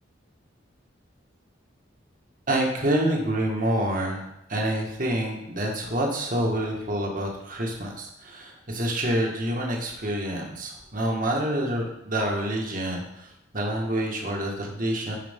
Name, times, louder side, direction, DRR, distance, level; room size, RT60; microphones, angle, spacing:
voice 1, 2.5-13.3 13.5-15.2, right 1 dB, 45° right, 0 dB, 1.7 m, -27 dB
12.0 x 5.1 x 3.7 m, 0.80 s
head